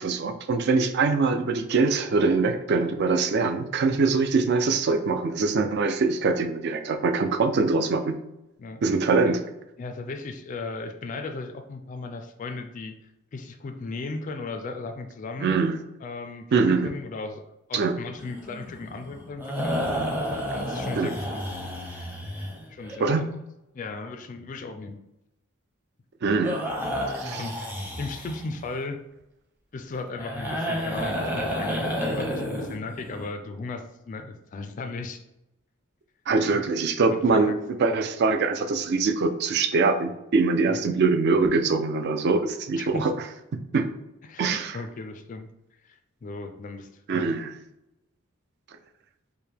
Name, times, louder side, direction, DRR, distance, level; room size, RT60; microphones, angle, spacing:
voice 1, 0.0-8.1 8.8-9.4 15.4-15.8 16.5-16.9 17.7-18.0 21.0-21.1 23.0-23.2 26.2-26.7 27.1-27.4 36.3-43.1 43.7-43.9 44.4-44.8 47.1-47.5, right 4 dB, 55° right, 7 dB, 0.4 m, -23 dB
voice 2, 9.8-13.0 13.3-15.6 16.0-17.4 17.7-21.5 22.7-23.3 23.7-25.0 27.4-27.5 28.0-29.0 29.7-35.2 36.5-36.7 37.1-37.6 40.7-40.8 42.8-43.1 44.3-45.5 45.8-47.3, left 3 dB, 40° left, 7 dB, 0.3 m, -36 dB
sound 1, 18.2-23.0 26.4-28.7 30.2-33.3, equal, 10° right, 0.7 m, -31 dB
4.6 x 2.1 x 3.4 m, 0.90 s
head